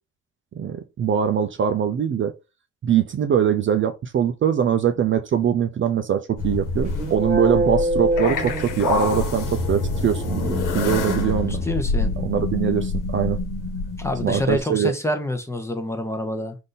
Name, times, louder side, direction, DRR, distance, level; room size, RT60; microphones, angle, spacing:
voice 1, 0.6-2.3 2.8-11.6 12.2-13.4 14.2-14.9, right 8 dB, 40° right, 0.5 m, -22 dB
sound 1, 6.4-14.6, left 3 dB, 85° left, 1.1 m, -26 dB
sound 2, 6.8-9.4, right 1 dB, 25° right, 1.2 m, -24 dB
voice 2, 11.5-12.1 14.0-16.6, left 1 dB, 10° left, 0.8 m, -27 dB
3.7 x 2.7 x 3.9 m
cardioid pair, 90°, 30 cm